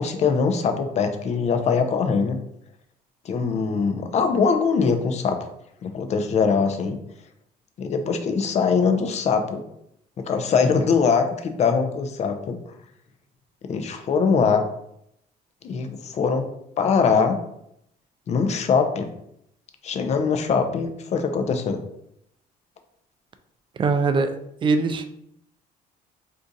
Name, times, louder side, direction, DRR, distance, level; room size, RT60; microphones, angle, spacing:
voice 1, 0.0-2.4 3.3-5.4 5.8-7.0 7.8-9.6 10.2-12.6 13.7-14.7 15.6-16.4 16.8-17.4 18.3-19.1 19.8-21.8, left 5 dB, 40° left, 7 dB, 0.5 m, -22 dB
voice 2, 23.8-24.3 24.6-25.1, right 4 dB, 30° right, 9 dB, 0.3 m, -21 dB
2.6 x 2.4 x 3.9 m, 0.76 s
cardioid pair, 110°, 17 cm